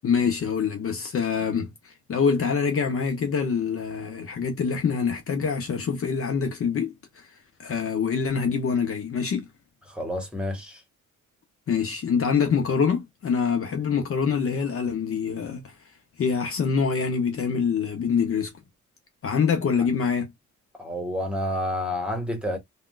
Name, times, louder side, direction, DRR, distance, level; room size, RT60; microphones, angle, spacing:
voice 1, 0.0-7.3 7.6-9.5 11.7-15.7 16.2-18.5 19.2-20.3, left 6 dB, 45° left, 0.8 m, -25 dB
voice 2, 9.9-10.8 20.8-22.6, left 1 dB, 5° right, 1.3 m, -29 dB
3.4 x 2.4 x 2.4 m
cardioid pair, 90°, 30 cm